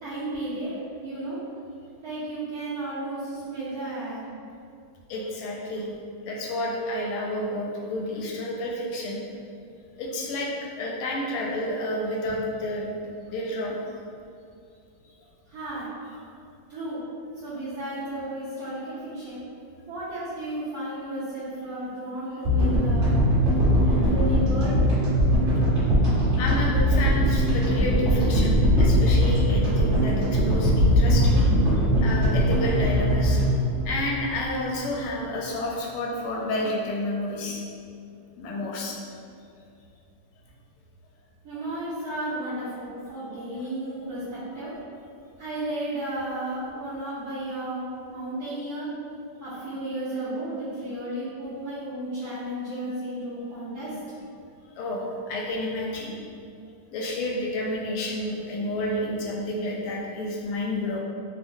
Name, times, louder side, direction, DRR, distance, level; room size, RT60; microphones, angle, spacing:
voice 1, 0.0-1.4 2.0-4.2 15.5-15.9 16.7-17.0 17.3-19.4 19.9-23.2 23.8-24.8 41.4-44.7 45.4-48.9 49.4-54.0, right 1 dB, 75° right, -11 dB, 0.8 m, -33 dB
voice 2, 5.1-5.9 6.2-9.2 10.0-10.5 10.8-13.0 13.3-13.8 26.4-31.4 32.0-33.4 33.8-37.6 38.4-39.0 54.8-56.1 56.9-61.0, left 1 dB, 85° left, -2 dB, 1.4 m, -30 dB
sound 1, 22.4-34.8, equal, 40° right, 1.4 m, -21 dB
3.7 x 2.0 x 2.6 m, 2.4 s
omnidirectional pair, 2.3 m